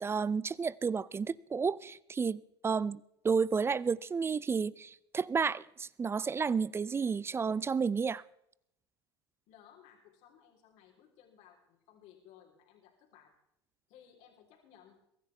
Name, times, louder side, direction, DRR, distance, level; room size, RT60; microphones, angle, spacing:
voice 1, 0.0-3.0 3.2-8.2, right 5 dB, 20° right, 0.4 m, -31 dB
voice 2, 9.5-13.3 13.9-15.0, left 9 dB, 55° left, 3.4 m, -60 dB
22.5 x 14.0 x 3.3 m
hypercardioid pair, 80°, 14 cm